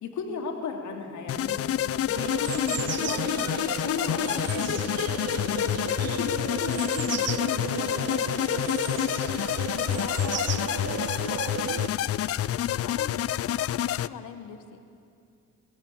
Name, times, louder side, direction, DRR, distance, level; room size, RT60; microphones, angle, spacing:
voice 1, 0.0-8.5, left 5 dB, 70° left, 3 dB, 2.7 m, -36 dB
sound 1, 1.3-14.1, left 11 dB, 50° left, 0.5 m, -28 dB
sound 2, 2.1-11.9, right 11 dB, 55° right, 0.6 m, -35 dB
voice 2, 9.7-14.9, left 9 dB, 90° left, 9 dB, 1.2 m, -42 dB
21.5 x 14.0 x 8.6 m, 2.5 s
cardioid pair, 90°, 30 cm